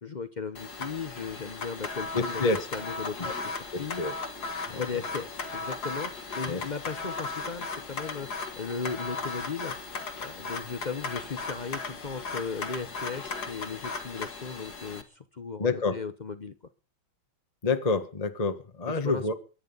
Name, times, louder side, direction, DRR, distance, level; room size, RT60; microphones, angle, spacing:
voice 1, 0.0-2.4 2.7-4.0 4.7-9.7 10.2-16.5 18.9-19.3, left 5 dB, 85° left, 11 dB, 0.4 m, -37 dB
sound 1, 0.6-15.0, left 4 dB, 50° left, 2.3 m, -36 dB
voice 2, 2.1-2.7 3.2-3.3 3.7-4.1 4.7-4.8 6.5-6.6 15.6-16.0 17.6-19.3, left 3 dB, 20° left, 8 dB, 1.2 m, -28 dB
23.0 x 9.5 x 5.5 m, 0.37 s
omnidirectional pair, 2.2 m